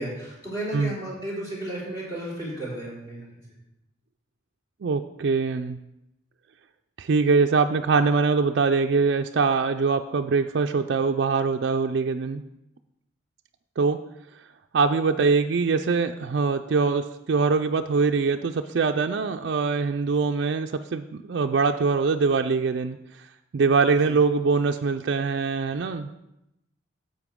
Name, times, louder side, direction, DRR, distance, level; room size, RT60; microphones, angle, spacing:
voice 1, 0.0-3.4 24.0-24.2, right 1 dB, 20° left, -7 dB, 3.5 m, -33 dB
voice 2, 4.8-5.8 7.0-12.4 13.8-14.0 14.7-23.0 23.5-26.1, right 4 dB, 60° right, 4 dB, 0.3 m, -23 dB
11.0 x 7.6 x 3.6 m, 0.86 s
head